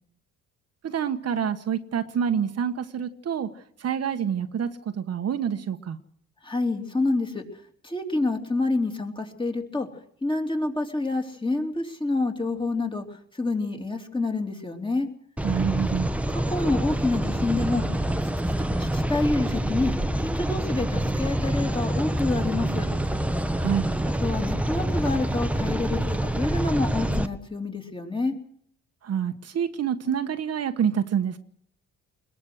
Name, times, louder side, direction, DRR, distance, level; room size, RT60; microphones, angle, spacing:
voice 1, 0.8-3.5 3.8-6.0 15.4-16.1 23.6-23.9 29.0-31.4, right 8 dB, 55° right, 8 dB, 1.4 m, -27 dB
voice 2, 6.4-7.4 7.8-9.9 10.2-15.1 16.3-17.9 18.8-19.9 20.2-22.9 24.2-28.4, left 2 dB, 15° left, 4 dB, 3.5 m, -27 dB
sound 1, 15.4-27.3, right 1 dB, 5° right, 1.2 m, -26 dB
21.5 x 18.5 x 6.5 m, 0.65 s
cardioid pair, 90°, 30 cm